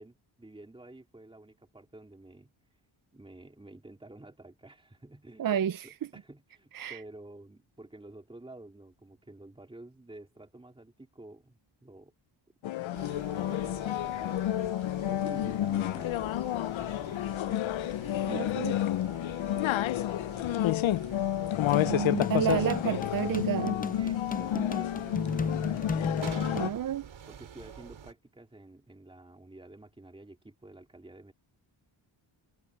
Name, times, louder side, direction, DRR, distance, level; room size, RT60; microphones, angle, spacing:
voice 1, 0.0-2.5 3.1-5.6 5.8-12.1 12.9-17.6 18.3-21.2 21.5-22.7 24.0-25.9 27.3-31.3, right 2 dB, 10° right, 3.0 m, -51 dB
voice 2, 5.4-5.9 6.7-7.0 18.3-18.7 21.8-23.8 26.5-27.0, right 9 dB, 45° right, 0.5 m, -30 dB
sound 1, 12.6-26.7, left 13 dB, 65° left, 0.6 m, -30 dB
sound 2, 12.9-28.1, right 8 dB, 70° right, 6.2 m, -48 dB
sound 3, 21.7-26.7, left 4 dB, 20° left, 0.4 m, -33 dB
wide cardioid pair, 160°, 50 cm